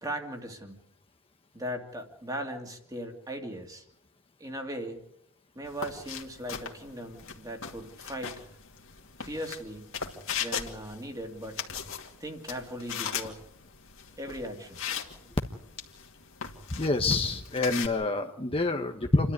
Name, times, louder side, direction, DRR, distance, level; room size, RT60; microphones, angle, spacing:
voice 1, 0.0-0.8 1.5-3.8 4.4-5.0 5.5-8.5 9.2-9.9 10.4-11.6 12.2-13.4 14.2-14.8, equal, 15° right, 4 dB, 2.7 m, -38 dB
sound 1, 5.7-17.9, left 7 dB, 65° left, 2.6 m, -39 dB
voice 2, 16.7-19.3, left 2 dB, 25° left, 5 dB, 1.2 m, -27 dB
28.5 x 13.0 x 9.8 m, 0.78 s
head